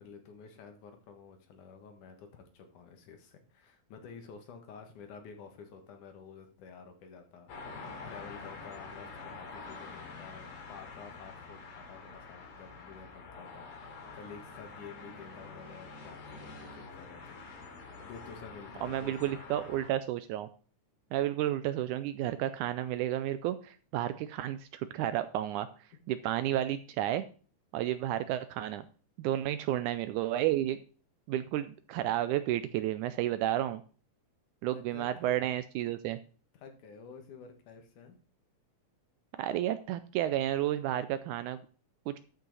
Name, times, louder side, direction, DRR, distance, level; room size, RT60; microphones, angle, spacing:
voice 1, 0.0-17.4 18.0-19.6 34.7-35.5 36.5-38.2, left 6 dB, 70° left, 5 dB, 2.8 m, -50 dB
sound 1, 7.5-19.9, left 4 dB, 85° left, 4.2 m, -47 dB
voice 2, 18.8-20.5 21.1-25.7 26.1-27.3 27.7-28.9 29.2-30.8 31.3-33.8 34.6-36.2 39.4-41.6 42.1-42.2, right 12 dB, 80° right, 12 dB, 1.8 m, -31 dB
13.0 x 5.6 x 4.0 m, 0.40 s
omnidirectional pair, 3.8 m